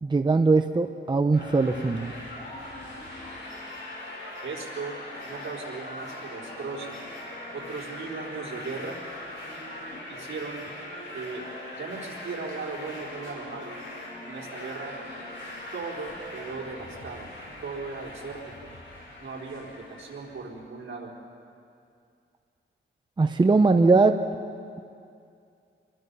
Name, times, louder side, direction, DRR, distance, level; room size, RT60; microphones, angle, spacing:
voice 1, 0.0-2.1 23.2-24.1, right 3 dB, 20° right, 7 dB, 0.6 m, -20 dB
sound 1, 1.3-20.4, left 1 dB, 65° left, 6.4 m, -41 dB
voice 2, 4.4-5.0 5.2-6.9 7.5-9.0 10.1-10.7 11.1-11.5 11.8-13.7 14.3-15.0 15.7-17.3 17.6-18.7 19.2-21.1, right 4 dB, 70° right, -2 dB, 4.2 m, -37 dB
27.0 x 21.5 x 5.4 m, 2.4 s
wide cardioid pair, 150°, 21 cm